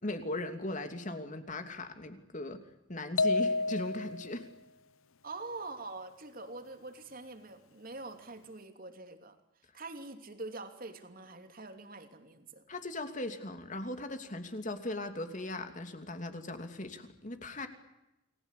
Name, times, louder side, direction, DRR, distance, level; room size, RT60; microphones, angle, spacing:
voice 1, 0.0-2.6 2.9-4.5 12.7-17.7, left 2 dB, 35° left, 7 dB, 2.8 m, -38 dB
sound 1, 3.2-4.4, left 3 dB, 75° left, 0.8 m, -29 dB
voice 2, 5.2-9.4 9.7-12.6, right 3 dB, 45° right, 7 dB, 2.9 m, -44 dB
29.5 x 20.5 x 8.4 m, 0.92 s
head